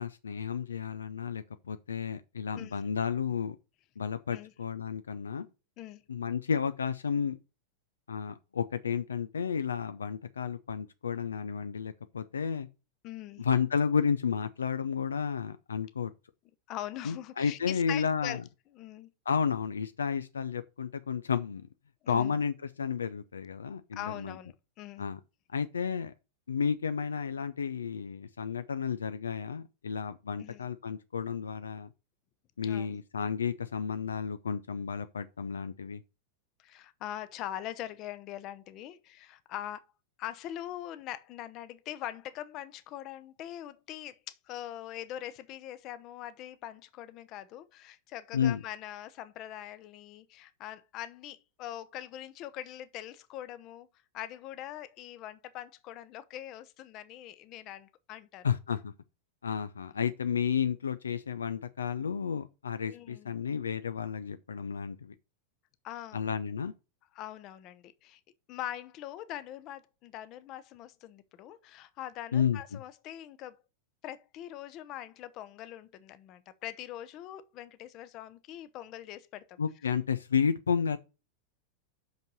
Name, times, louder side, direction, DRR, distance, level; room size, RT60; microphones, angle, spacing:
voice 1, 0.0-3.6 4.0-5.5 6.1-7.4 8.1-12.7 13.4-16.1 17.0-18.4 19.3-21.6 22.1-24.3 25.0-25.2 25.5-26.1 26.5-31.9 32.6-36.0 48.3-48.6 58.4-58.9 59.4-65.1 66.1-66.7 72.3-72.8 79.6-81.0, left 6 dB, 70° left, 0.5 m, -32 dB
voice 2, 13.0-13.5 16.7-18.4 18.7-19.1 22.0-22.4 23.9-25.1 30.4-30.7 32.6-33.0 36.6-39.9 40.2-53.9 54.1-58.5 62.9-63.3 65.8-66.3 67.1-68.2 68.5-73.6 74.0-79.6, left 12 dB, 40° left, 0.8 m, -42 dB
6.0 x 5.3 x 6.5 m
figure-of-eight pair, 90°, 0 cm